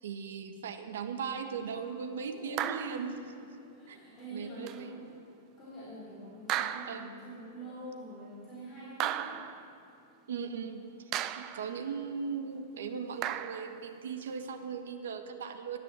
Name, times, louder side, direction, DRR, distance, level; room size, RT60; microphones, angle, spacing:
voice 1, 0.0-3.1 3.9-4.0 4.3-4.9 6.9-7.1 10.3-10.9 11.4-15.8, right 6 dB, 85° right, 7 dB, 1.3 m, -38 dB
voice 2, 2.3-3.1 3.7-5.1 5.6-9.4, right 2 dB, 10° left, -9 dB, 3.3 m, -45 dB
sound 1, 2.6-3.1 4.7-4.8 6.5-7.2 9.0-9.7 11.1-11.7 13.2-13.8, right 11 dB, 25° right, 0.5 m, -35 dB
14.5 x 9.6 x 8.3 m, 2.8 s
supercardioid pair, 170°, 0 cm